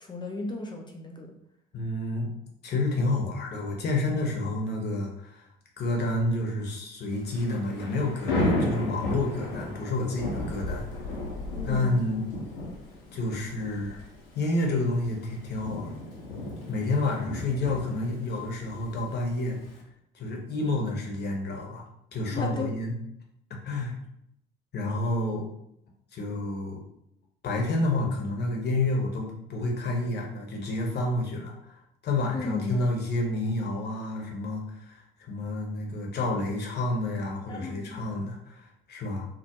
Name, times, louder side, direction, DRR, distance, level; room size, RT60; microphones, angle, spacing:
voice 1, 0.0-1.3 11.5-11.9 22.3-22.7 32.3-32.8 37.5-38.0, left 3 dB, 15° left, 2 dB, 0.3 m, -35 dB
voice 2, 1.7-2.3 2.6-5.5 5.8-11.2 11.7-12.3 13.1-14.1 14.3-15.9 16.7-19.6 20.1-21.8 22.1-22.9 23.6-24.0 24.7-25.5 26.1-26.8 27.4-39.3, left 2 dB, 35° left, 0 dB, 0.7 m, -29 dB
Thunder / Rain, 7.1-19.8, left 1 dB, 75° left, 0.6 m, -34 dB
2.3 x 2.0 x 2.8 m, 0.75 s
figure-of-eight pair, 55°, 29 cm